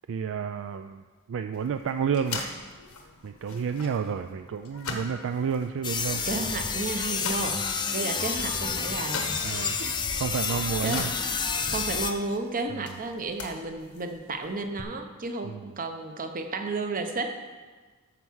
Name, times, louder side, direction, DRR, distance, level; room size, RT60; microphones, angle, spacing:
voice 1, 0.1-2.6 3.2-6.2 7.4-7.5 9.4-9.8 10.2-11.1 12.8-12.9 15.4-15.6, right 6 dB, 60° right, 9 dB, 0.3 m, -30 dB
sound 1, 1.5-14.8, left 4 dB, 85° left, 1.3 m, -42 dB
sound 2, 5.8-12.1, left 5 dB, 20° left, 0.6 m, -29 dB
voice 2, 6.1-9.9 10.5-11.4 11.7-17.3, right 3 dB, 40° right, 6 dB, 0.9 m, -33 dB
13.0 x 4.6 x 6.2 m, 1.4 s
head